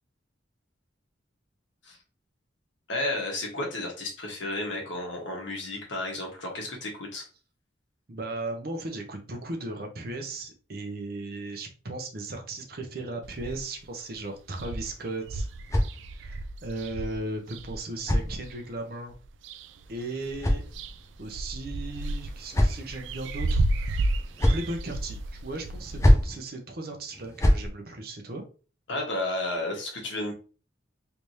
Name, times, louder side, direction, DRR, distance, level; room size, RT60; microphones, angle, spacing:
voice 1, 2.9-7.3 28.9-30.3, left 2 dB, 85° left, 0 dB, 1.3 m, -32 dB
voice 2, 8.1-15.5 16.1-19.1 19.9-20.6 21.2-28.4, right 2 dB, 55° right, 4 dB, 0.7 m, -36 dB
sound 1, 13.2-13.8 14.2-14.3 14.5-18.6 19.1-19.9 20.2-26.1, right 2 dB, 80° right, 0.3 m, -33 dB
sound 2, 14.8-16.5 17.5-18.9 19.9-21.2 22.0-23.1 24.0-24.8 25.8-26.4 27.1-27.7, equal, 15° left, 0.5 m, -26 dB
3.3 x 3.2 x 2.7 m, 0.37 s
head